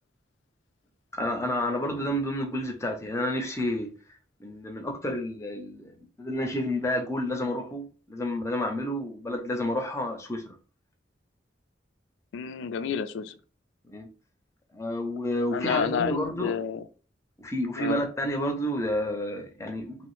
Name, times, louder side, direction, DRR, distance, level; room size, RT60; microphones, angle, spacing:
voice 1, 1.1-3.9 4.4-5.9 6.2-10.6 13.9-14.1 14.7-16.5 17.4-20.0, left 1 dB, 15° left, 0.5 m, -30 dB
voice 2, 12.3-13.4 15.5-16.9 17.8-18.0, left 7 dB, 85° left, 0.3 m, -30 dB
3.0 x 2.0 x 3.0 m
head